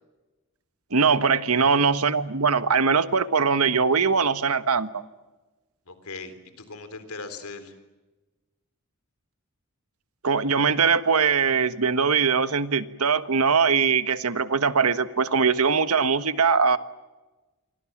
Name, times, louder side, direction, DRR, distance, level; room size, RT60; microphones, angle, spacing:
voice 1, 0.9-5.0 10.2-16.8, right 5 dB, 75° right, 12 dB, 1.4 m, -21 dB
voice 2, 1.5-1.9 5.9-7.7, left 3 dB, 75° left, 10 dB, 3.7 m, -40 dB
29.0 x 25.0 x 7.4 m, 1.2 s
head